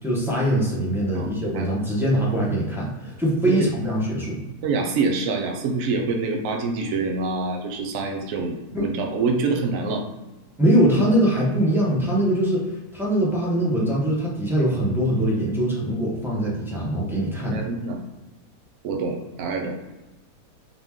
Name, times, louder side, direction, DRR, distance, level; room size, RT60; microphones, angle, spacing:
voice 1, 0.0-4.4 8.7-8.9 10.6-17.7, right 1 dB, ahead, -6 dB, 0.9 m, -22 dB
voice 2, 1.1-1.7 3.4-3.5 4.6-10.0 17.5-18.0 18.8-19.8, right 4 dB, 65° right, 2 dB, 1.0 m, -26 dB
3.9 x 3.0 x 3.6 m, 1.1 s
omnidirectional pair, 1.7 m